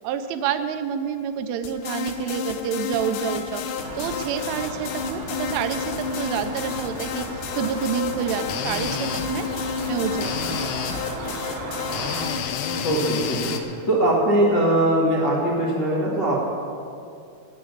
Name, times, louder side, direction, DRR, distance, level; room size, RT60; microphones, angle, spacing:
voice 1, 0.0-9.5 9.9-10.7, right 8 dB, 85° right, 9 dB, 3.1 m, -28 dB
sound 1, 1.6-13.6, left 6 dB, 80° left, 2.7 m, -30 dB
sound 2, 3.8-12.3, right 3 dB, 65° right, 2.1 m, -35 dB
voice 2, 12.8-16.4, right 1 dB, 50° left, -9 dB, 1.2 m, -21 dB
13.0 x 6.2 x 9.5 m, 2.5 s
omnidirectional pair, 5.7 m